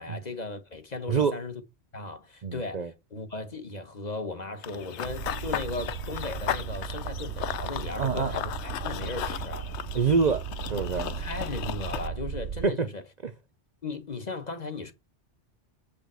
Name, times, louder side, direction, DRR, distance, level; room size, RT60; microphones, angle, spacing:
voice 1, 0.0-1.6 1.9-9.7 11.2-13.0 13.8-14.9, left 3 dB, 40° left, 1.3 m, -37 dB
voice 2, 2.4-2.9 8.0-8.3 9.9-11.1 12.6-12.9 13.2-13.3, right 5 dB, 45° right, 0.7 m, -26 dB
Run / Bird vocalization bird call bird song, 4.6-12.1, left 10 dB, 80° left, 1.0 m, -36 dB
sound 1, 5.0-12.7, right 8 dB, 75° right, 0.9 m, -36 dB
7.3 x 5.1 x 6.2 m
omnidirectional pair, 1.1 m